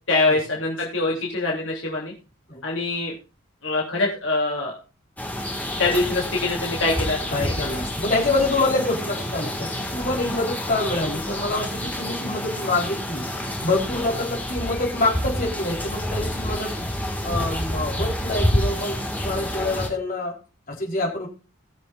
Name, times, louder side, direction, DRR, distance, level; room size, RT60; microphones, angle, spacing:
voice 1, 0.1-2.1 2.6-3.1 3.6-4.8 5.8-7.7, left 2 dB, 65° left, -2 dB, 3.2 m, -24 dB
sound 1, 5.2-19.9, left 1 dB, 10° left, 2.0 m, -28 dB
voice 2, 7.3-16.7 17.2-20.4 20.7-21.3, left 2 dB, 40° left, -2 dB, 4.1 m, -26 dB
20.5 x 6.9 x 2.6 m, 0.31 s
head